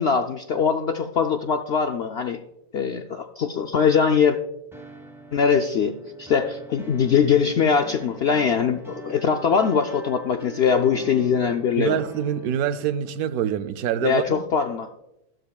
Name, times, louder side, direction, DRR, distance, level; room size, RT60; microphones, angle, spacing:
voice 1, 0.0-2.4 2.7-4.4 5.3-12.0 14.0-14.9, left 6 dB, 65° left, 0.6 m, -22 dB
sound 1, 4.7-13.0, right 3 dB, ahead, 1.4 m, -43 dB
voice 2, 11.8-14.4, right 9 dB, 80° right, 1.1 m, -25 dB
14.0 x 12.0 x 2.3 m
omnidirectional pair, 1.6 m